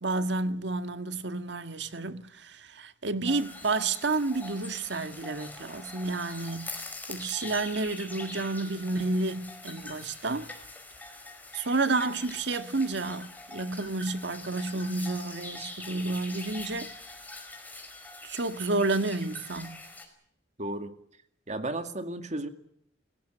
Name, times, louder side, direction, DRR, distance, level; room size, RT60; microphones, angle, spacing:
voice 1, 0.0-6.7 7.1-10.5 11.5-16.9 18.2-19.8, right 3 dB, 65° right, 1.7 m, -30 dB
sound 1, 3.3-20.0, left 2 dB, 10° left, 4.8 m, -43 dB
voice 2, 20.6-20.9 21.5-22.5, right 2 dB, 40° right, 2.3 m, -33 dB
29.5 x 17.5 x 7.9 m
head